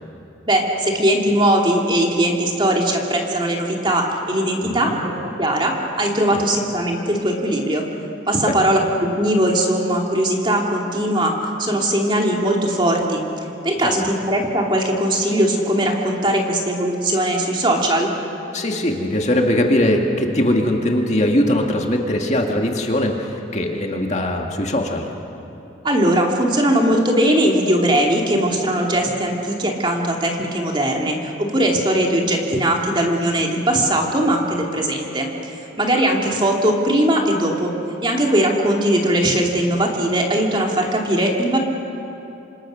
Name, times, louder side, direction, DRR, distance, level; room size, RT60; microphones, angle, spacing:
voice 1, 0.5-5.1 5.4-7.8 8.3-11.3 11.6-13.2 13.6-18.1 25.8-37.7 38.0-41.6, right 1 dB, 25° right, 0 dB, 2.6 m, -19 dB
voice 2, 4.6-5.0 6.3-6.4 8.4-8.7 13.8-13.9 18.5-25.1, left 1 dB, 35° left, 2 dB, 1.9 m, -21 dB
27.5 x 26.5 x 6.4 m, 2.9 s
head